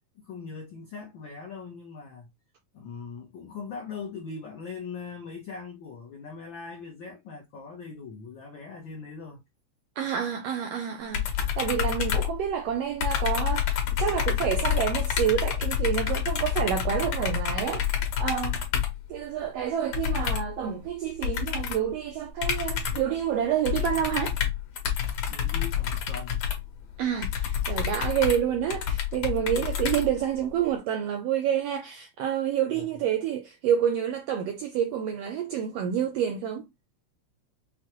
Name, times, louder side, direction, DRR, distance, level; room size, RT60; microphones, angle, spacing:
voice 1, 0.1-2.3 2.7-9.4 25.3-26.4 29.1-29.2 32.7-32.9, left 5 dB, 85° left, 1.0 m, -40 dB
voice 2, 10.0-17.9 18.2-18.7 19.1-24.3 27.0-36.7, right 9 dB, 85° right, 1.4 m, -28 dB
sound 1, 11.1-12.7 13.0-19.0 19.9-20.6 21.2-21.9 22.4-23.2 23.7-30.5, left 9 dB, 65° left, 2.1 m, -28 dB
6.1 x 2.2 x 2.9 m
omnidirectional pair, 3.4 m